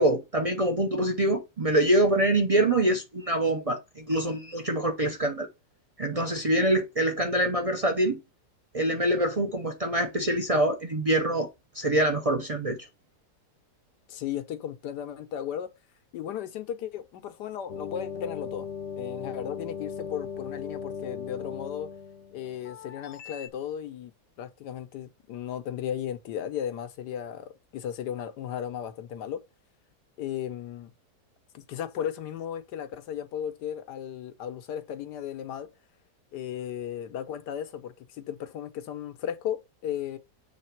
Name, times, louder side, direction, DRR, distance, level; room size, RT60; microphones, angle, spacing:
voice 1, 0.0-5.5 6.0-8.2 8.7-12.8, right 1 dB, 40° right, 0.5 m, -25 dB
voice 2, 14.1-15.7 16.1-18.7 19.0-21.9 22.3-24.1 24.4-29.4 30.2-30.9 31.5-35.7 36.3-40.2, left 9 dB, 85° left, 1.4 m, -35 dB
sound 1, 17.7-23.5, left 6 dB, 55° left, 0.7 m, -38 dB
7.4 x 3.3 x 4.5 m
omnidirectional pair, 1.7 m